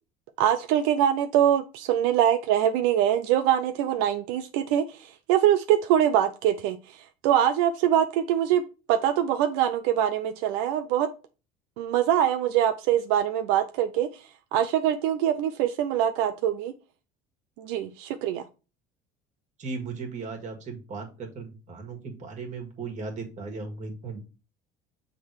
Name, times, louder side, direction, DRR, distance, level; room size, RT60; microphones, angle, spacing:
voice 1, 0.4-8.6 8.9-11.1 11.8-14.2 14.5-16.7 17.6-18.4, right 10 dB, 80° right, 0.5 m, -24 dB
voice 2, 19.6-24.2, right 4 dB, 40° right, 1.9 m, -37 dB
6.4 x 3.8 x 4.6 m
cardioid pair, 115°, 19 cm